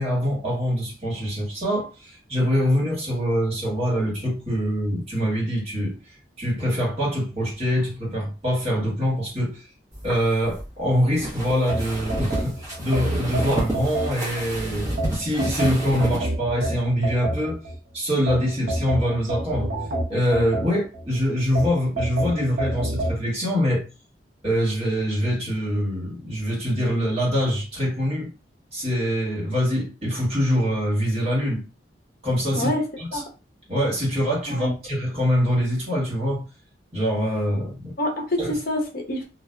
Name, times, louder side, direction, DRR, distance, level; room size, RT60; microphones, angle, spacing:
voice 1, 0.0-5.9 6.4-9.6 10.0-17.6 17.9-19.7 20.1-23.9 24.4-28.3 28.7-31.6 32.2-32.7 33.0-33.2 33.7-36.4 36.9-37.9 38.4-38.5, equal, 35° right, 1.3 m, -24 dB
sound 1, 9.9-16.2, right 1 dB, 15° right, 0.8 m, -31 dB
sound 2, 11.7-14.5 15.0-17.8 18.3-21.1 21.6-23.2, right 1 dB, 55° right, 0.7 m, -28 dB
voice 2, 32.5-32.8 33.1-33.3 34.5-34.7 38.0-39.2, left 1 dB, 50° left, 0.6 m, -26 dB
2.6 x 2.2 x 2.2 m
head